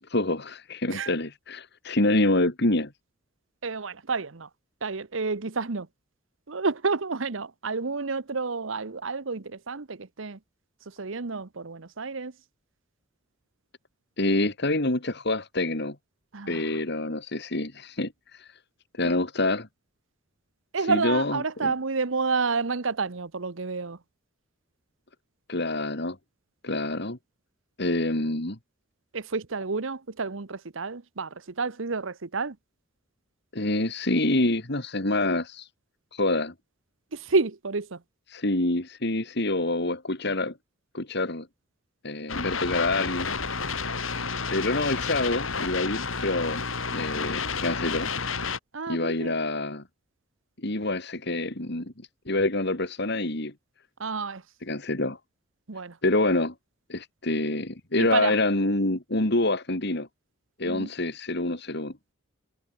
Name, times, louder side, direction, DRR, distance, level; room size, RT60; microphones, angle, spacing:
voice 1, 0.0-2.9 14.2-16.0 16.5-18.5 19.0-19.7 20.8-21.7 25.5-26.2 26.6-27.2 27.8-28.6 33.5-35.7 36.1-36.5 38.3-40.6 40.9-41.5 42.0-43.3 44.1-46.6 46.9-48.1 48.9-49.8 50.6-51.9 52.3-53.5 54.6-55.2 56.0-56.5 56.9-60.1 60.6-61.9, left 2 dB, 55° left, 2.8 m, -27 dB
voice 2, 3.6-4.5 4.8-5.9 6.5-10.4 10.9-12.3 16.3-16.7 19.0-19.1 20.7-24.0 29.1-32.6 37.1-38.0 48.7-49.3 54.0-54.4 55.7-56.0 58.0-58.4 60.7-60.9, right 4 dB, 75° right, 1.0 m, -30 dB
sound 1, 42.3-48.6, left 5 dB, 85° left, 4.4 m, -31 dB
head